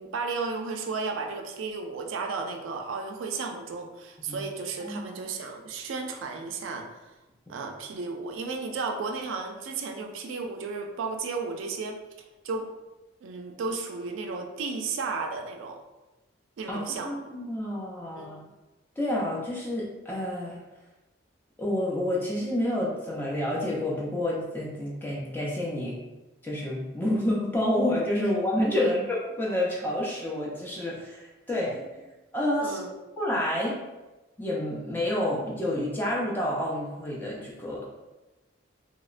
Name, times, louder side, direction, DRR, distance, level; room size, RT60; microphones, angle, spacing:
voice 1, 0.0-6.9 7.5-12.0 12.4-12.7 13.2-15.8 16.6-17.3 18.2-18.3 28.8-28.9 32.6-32.9, right 4 dB, 75° right, 3 dB, 0.3 m, -33 dB
voice 2, 16.7-18.4 19.0-20.6 21.6-26.0 26.4-31.7 32.3-32.8 33.2-33.8 34.4-37.9, left 1 dB, 10° left, -5 dB, 0.4 m, -29 dB
2.8 x 2.0 x 2.4 m, 1.1 s
head